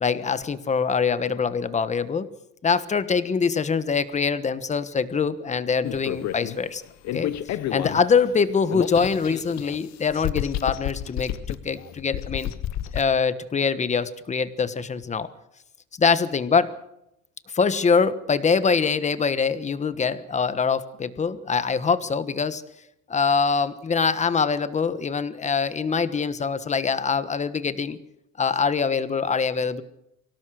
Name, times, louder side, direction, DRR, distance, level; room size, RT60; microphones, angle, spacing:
voice 1, 0.0-2.3 2.6-6.8 7.1-12.5 12.9-15.3 16.0-16.7 17.5-22.6 23.1-28.0 28.4-29.8, left 5 dB, 20° left, 13 dB, 1.3 m, -24 dB
sound 1, 5.8-6.6 7.0-8.2 8.7-9.8 10.1-13.0, left 12 dB, 55° left, 1.1 m, -30 dB
24.0 x 17.5 x 6.5 m, 0.81 s
cardioid pair, 150°, 33 cm